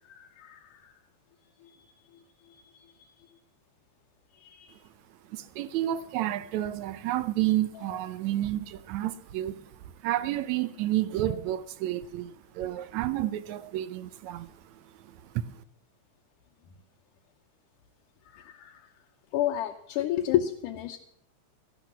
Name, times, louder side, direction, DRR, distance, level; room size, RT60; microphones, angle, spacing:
voice 1, 0.1-0.9 1.6-1.7 2.5-2.6 4.3-4.7 7.8-8.0 18.3-18.8 19.3-21.0, left 12 dB, 75° left, 2.3 m, -31 dB
voice 2, 5.3-9.7 10.0-15.6, right 13 dB, 75° right, 1.7 m, -31 dB
13.5 x 11.5 x 6.0 m
omnidirectional pair, 3.8 m